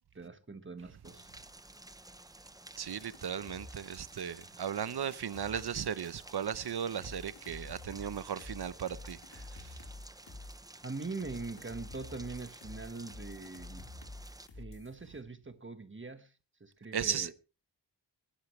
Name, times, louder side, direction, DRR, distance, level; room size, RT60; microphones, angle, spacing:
voice 1, 0.1-1.3 10.8-13.9 14.6-16.3 16.6-17.3, right 3 dB, 30° right, 1.4 m, -42 dB
Rain, 1.0-14.5, right 2 dB, 10° right, 0.6 m, -53 dB
voice 2, 2.8-9.8 16.9-17.3, right 8 dB, 60° right, 0.8 m, -36 dB
sound 1, 2.9-6.4 7.0-10.7 11.2-14.9, left 2 dB, 80° left, 4.0 m, -49 dB
19.5 x 11.5 x 3.2 m
wide cardioid pair, 110°, 43 cm